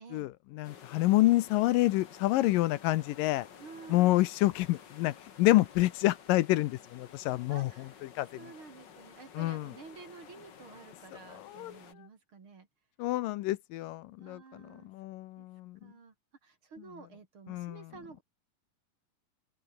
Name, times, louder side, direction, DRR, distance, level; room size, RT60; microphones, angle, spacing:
voice 1, 0.0-3.5 3.9-7.7 8.0-8.3 9.4-9.7 11.3-11.8 13.0-15.9 17.5-17.9, left 17 dB, 80° left, 2.3 m, -28 dB
sound 1, 0.6-11.9, left 7 dB, 45° left, 1.4 m, -53 dB
voice 2, 3.6-4.2 7.5-8.0 8.4-12.7 14.2-14.9 15.4-15.5 15.8-16.1 16.4-18.2, right 5 dB, 40° right, 3.1 m, -51 dB
open air
omnidirectional pair, 4.1 m